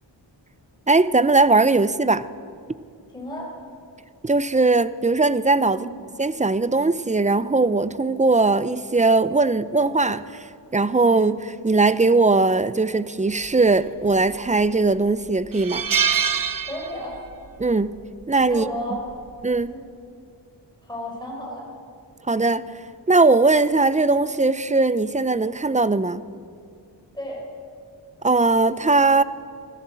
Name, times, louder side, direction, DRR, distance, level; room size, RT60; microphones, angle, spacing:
voice 1, 0.9-2.3 4.2-5.9 6.2-15.8 17.6-17.9 18.3-18.7 19.4-19.7 22.3-22.6 23.1-26.2 28.2-29.2, right 3 dB, 15° right, 0.6 m, -19 dB
voice 2, 3.1-3.5 5.7-5.9 16.6-17.2 18.5-19.0 19.6-19.8 20.8-21.7 27.1-27.5, equal, 10° left, 5.0 m, -33 dB
sound 1, 14.1-14.6 15.0-15.1 15.5-17.3 17.6-17.8 19.1-19.4, right 7 dB, 50° right, 0.9 m, -24 dB
25.0 x 14.0 x 7.7 m
wide cardioid pair, 110°, 44 cm